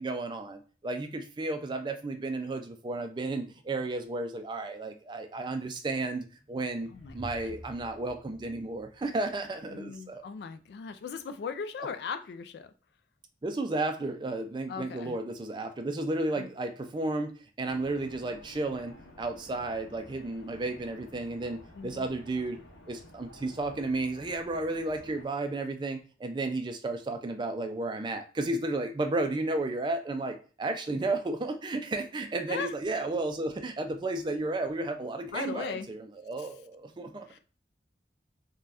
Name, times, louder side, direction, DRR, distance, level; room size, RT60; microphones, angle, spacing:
voice 1, 0.0-10.2 13.4-22.6 22.9-37.4, right 2 dB, 25° right, 6 dB, 0.3 m, -33 dB
sound 1, 6.4-9.7, equal, 30° left, 0.6 m, -49 dB
voice 2, 6.9-7.6 9.7-12.7 14.7-15.2 16.3-16.5 21.8-22.1 32.5-32.7 35.3-35.9 36.4-36.5 37.3-37.4, left 6 dB, 65° left, 10 dB, 0.3 m, -38 dB
sound 2, 17.6-25.3, left 1 dB, 90° left, 0.7 m, -52 dB
2.5 x 2.2 x 3.3 m, 0.38 s
head